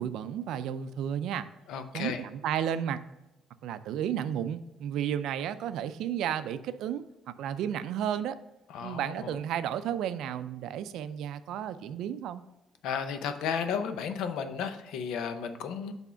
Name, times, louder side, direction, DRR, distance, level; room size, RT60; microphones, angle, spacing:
voice 1, 0.0-1.5 1.9-3.0 3.6-8.4 8.8-12.4, right 9 dB, 80° right, 12 dB, 0.4 m, -33 dB
voice 2, 1.7-2.2 8.7-9.4 12.8-15.9, left 7 dB, 85° left, 8 dB, 0.6 m, -33 dB
6.1 x 3.5 x 5.6 m, 0.92 s
cardioid pair, 145°, 0 cm